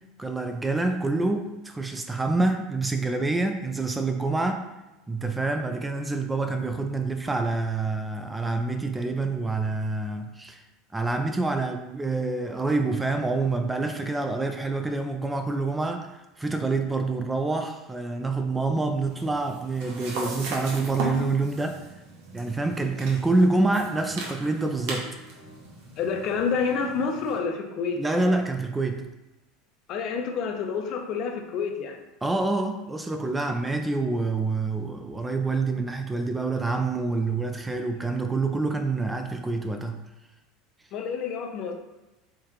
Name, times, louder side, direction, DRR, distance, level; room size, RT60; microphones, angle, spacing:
voice 1, 0.2-4.7 5.1-10.6 10.9-21.8 22.3-25.1 28.0-29.0 32.2-40.0, right 3 dB, 15° right, 6 dB, 0.4 m, -27 dB
sound 1, 19.1-27.4, right 2 dB, 65° right, 0.9 m, -38 dB
sound 2, 22.8-23.1 23.5-23.8 24.1-24.4 24.7-25.7 26.0-26.3 26.6-26.9 27.3-27.9, left 1 dB, 80° left, 1.2 m, -51 dB
voice 2, 26.0-28.0 29.9-32.0 40.9-41.7, left 5 dB, 50° left, 3 dB, 0.6 m, -28 dB
3.6 x 3.5 x 2.9 m, 1.0 s
hypercardioid pair, 80°, 0 cm